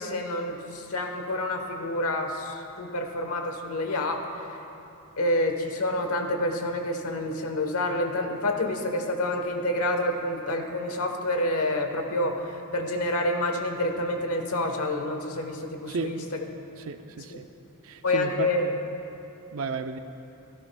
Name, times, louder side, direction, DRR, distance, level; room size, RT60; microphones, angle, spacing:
voice 1, 0.0-4.2 5.2-16.2 18.0-18.6, left 1 dB, 75° left, 4 dB, 1.1 m, -28 dB
voice 2, 16.8-17.5 17.8-18.8 19.5-20.0, right 4 dB, 65° right, 8 dB, 0.5 m, -33 dB
16.0 x 13.5 x 2.3 m, 2.9 s
head